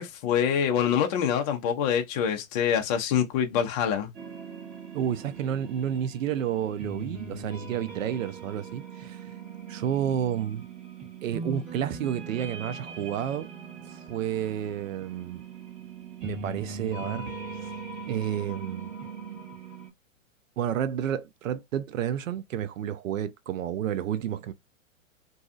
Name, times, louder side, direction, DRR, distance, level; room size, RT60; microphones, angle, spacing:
voice 1, 0.0-4.1, left 8 dB, 30° left, 0.5 m, -25 dB
sound 1, 4.1-19.9, right 4 dB, 30° right, 1.2 m, -40 dB
voice 2, 4.9-9.2 9.7-10.6 11.2-13.5 13.9-15.4 16.2-17.3 18.1-18.9 20.6-24.5, right 9 dB, 75° right, 0.6 m, -30 dB
2.7 x 2.4 x 2.3 m
hypercardioid pair, 130°, 40 cm